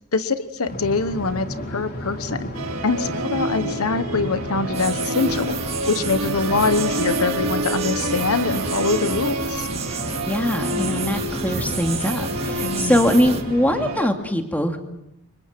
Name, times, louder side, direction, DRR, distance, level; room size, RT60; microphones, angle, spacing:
voice 1, 0.1-2.5 2.8-5.5 5.9-9.7 12.6-13.0, left 4 dB, 70° left, 12 dB, 1.1 m, -24 dB
sound 1, 0.7-13.9, left 1 dB, 45° left, 3.6 m, -33 dB
Musical instrument, 2.5-14.1, right 1 dB, 70° right, 2.4 m, -28 dB
sound 2, 4.7-13.4, right 5 dB, 30° right, 2.2 m, -32 dB
voice 2, 10.3-14.8, left 1 dB, 10° left, 4 dB, 2.4 m, -22 dB
29.5 x 25.0 x 6.0 m, 0.84 s
head